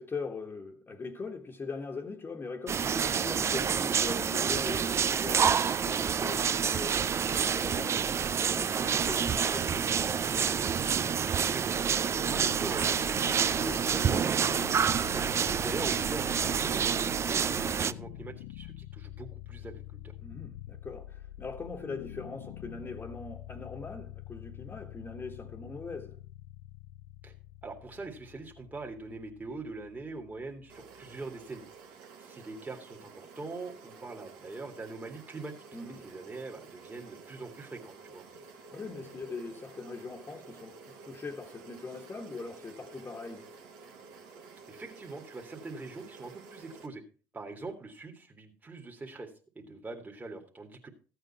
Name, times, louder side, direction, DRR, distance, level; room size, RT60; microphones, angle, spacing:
voice 1, 0.0-5.6 5.9-10.0 20.2-26.2 35.7-36.1 38.7-43.5, left 4 dB, 30° left, 1.5 m, -41 dB
sound 1, 2.7-17.9, right 7 dB, 40° right, 0.5 m, -28 dB
voice 2, 11.4-20.1 27.2-27.3 27.6-31.6 32.2-35.5 36.0-38.2 44.7-47.0 47.3-50.9, right 3 dB, 20° right, 2.2 m, -43 dB
sound 2, 12.3-31.3, left 14 dB, 85° left, 0.4 m, -46 dB
sound 3, 30.7-46.9, right 4 dB, 75° right, 2.0 m, -51 dB
14.0 x 8.1 x 4.3 m
hypercardioid pair, 70°, 7 cm